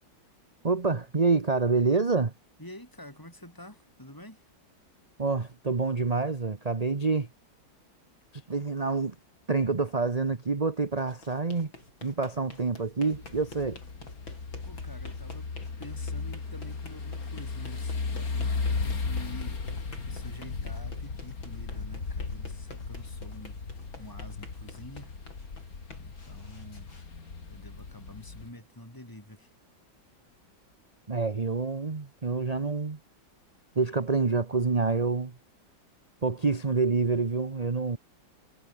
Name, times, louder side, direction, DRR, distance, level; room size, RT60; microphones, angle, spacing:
voice 1, 0.6-2.3 5.2-7.3 8.5-9.1 9.5-11.7 12.0-13.8 31.1-33.0 33.7-35.3 36.2-38.0, right 4 dB, 25° right, 1.0 m, -27 dB
voice 2, 2.6-4.4 14.6-19.6 20.0-23.6 24.0-25.1 26.0-26.9 27.5-29.5, left 1 dB, 10° left, 7.2 m, -48 dB
sound 1, 10.9-27.8, left 2 dB, 85° left, 7.2 m, -51 dB
sound 2, 13.1-28.5, left 4 dB, 50° left, 3.1 m, -36 dB
omnidirectional pair, 2.1 m